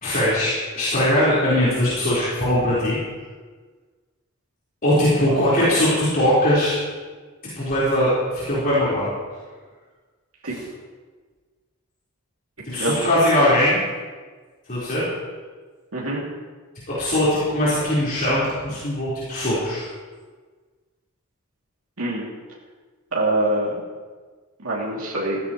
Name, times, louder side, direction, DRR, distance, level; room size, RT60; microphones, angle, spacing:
voice 1, 0.0-3.0 4.8-6.8 7.5-9.1 10.5-10.6 12.6-13.8 14.7-15.1 16.9-19.8, left 1 dB, 45° left, -11 dB, 4.4 m, -20 dB
voice 2, 23.1-23.8 24.6-25.4, right 1 dB, 80° right, -5 dB, 2.7 m, -24 dB
16.0 x 15.0 x 3.1 m, 1.4 s
head